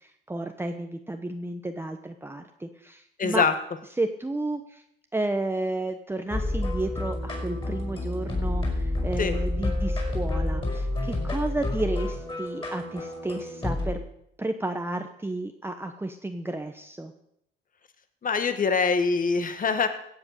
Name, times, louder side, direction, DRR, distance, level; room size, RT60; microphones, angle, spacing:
voice 1, 0.0-3.5 3.9-4.8 5.1-14.0 14.4-17.1, right 2 dB, 10° right, 5 dB, 1.0 m, -32 dB
voice 2, 3.2-3.5 9.2-9.4 18.2-19.9, left 5 dB, 45° left, 9 dB, 1.7 m, -24 dB
sound 1, 6.3-13.9, left 2 dB, 25° left, 5.3 m, -29 dB
16.0 x 7.9 x 6.6 m, 0.74 s
cardioid pair, 90°, 20 cm